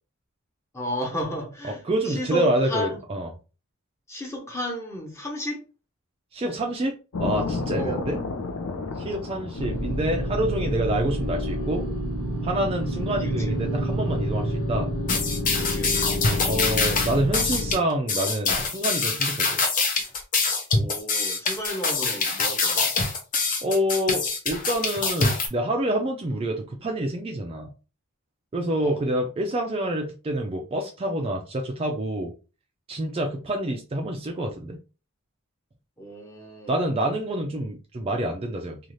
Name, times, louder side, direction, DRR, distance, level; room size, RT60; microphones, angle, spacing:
voice 1, 0.7-3.0 4.1-5.6 7.8-8.1 13.2-13.6 15.6-16.2 20.7-22.9 28.8-29.0 36.0-36.8, equal, 15° left, 0.8 m, -33 dB
voice 2, 1.8-3.3 6.3-6.9 7.2-8.2 9.0-11.9 12.4-14.9 16.4-19.6 23.6-27.7 28.5-32.3 32.9-34.8 36.7-38.8, right 1 dB, 25° right, 0.4 m, -27 dB
sound 1, 7.1-13.9, left 3 dB, 85° left, 0.5 m, -34 dB
sound 2, 9.6-17.7, equal, 70° left, 1.2 m, -28 dB
sound 3, 15.1-25.5, left 4 dB, 40° left, 0.7 m, -25 dB
2.6 x 2.3 x 3.1 m
head